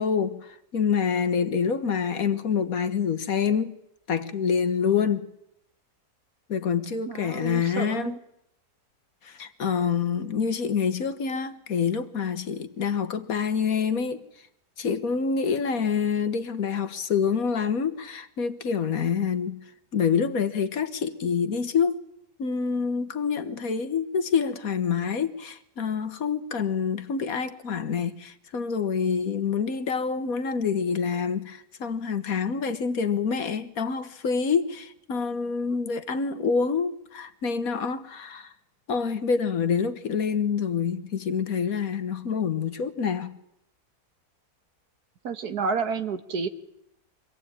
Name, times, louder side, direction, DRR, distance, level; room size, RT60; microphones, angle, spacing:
voice 1, 0.0-3.8 4.1-5.3 6.5-8.2 9.2-14.2 14.8-19.7 19.9-22.0 22.4-38.5 38.9-43.4, left 6 dB, 65° left, 1.7 m, -27 dB
voice 2, 7.1-8.2 45.2-46.5, right 5 dB, 80° right, 1.9 m, -30 dB
25.0 x 17.5 x 9.0 m
omnidirectional pair, 1.6 m